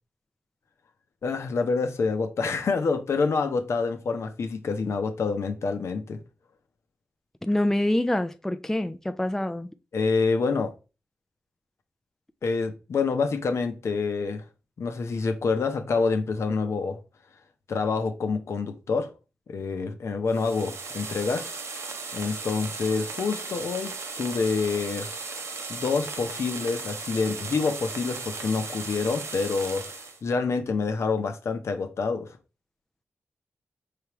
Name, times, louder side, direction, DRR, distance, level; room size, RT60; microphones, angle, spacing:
voice 1, 1.2-6.2 9.9-10.7 12.4-14.4 14.8-17.0 17.7-19.1 19.5-21.5 22.1-25.1 25.7-29.9 30.2-32.4, left 4 dB, 65° left, 0.7 m, -27 dB
voice 2, 7.4-9.7, left 1 dB, 10° left, 0.4 m, -26 dB
sound 1, 20.3-30.2, right 4 dB, 65° right, 0.9 m, -36 dB
4.6 x 3.4 x 3.0 m
cardioid pair, 50°, 5 cm